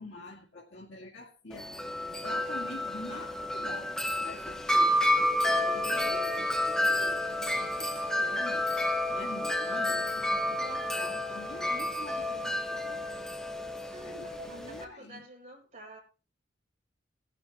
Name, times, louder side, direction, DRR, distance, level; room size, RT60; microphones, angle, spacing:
voice 1, 0.0-1.7 2.0-5.3 5.6-8.7 9.1-13.3 14.0-15.2, left 2 dB, 70° left, 2.2 m, -46 dB
Wind chime, 1.5-14.8, left 1 dB, 5° left, 1.3 m, -30 dB
voice 2, 5.4-6.3 13.9-16.0, right 2 dB, 40° right, 6.2 m, -47 dB
17.5 x 11.5 x 2.9 m
head